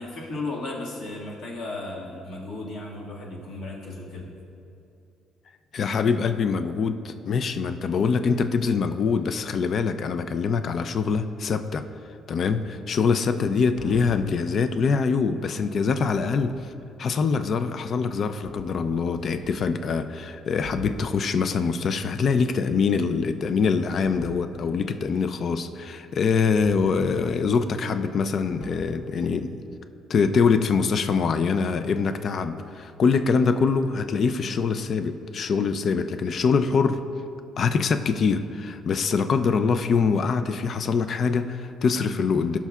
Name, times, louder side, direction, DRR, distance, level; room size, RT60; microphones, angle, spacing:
voice 1, 0.0-4.3, left 2 dB, 70° left, -3 dB, 1.8 m, -35 dB
voice 2, 5.7-11.8 12.3-16.5 17.0-29.6 30.1-37.0 37.6-42.6, left 5 dB, 50° left, 10 dB, 0.4 m, -24 dB
sound 1, 13.8-14.4 16.0-16.7 17.9-18.0 18.4-19.6 20.2-20.3 20.6-21.1 22.7-23.3 23.6-24.7 26.6-27.6 28.6-29.1, equal, 85° left, 1.7 m, -44 dB
17.0 x 5.8 x 2.4 m, 2.7 s
cardioid pair, 110°, 0 cm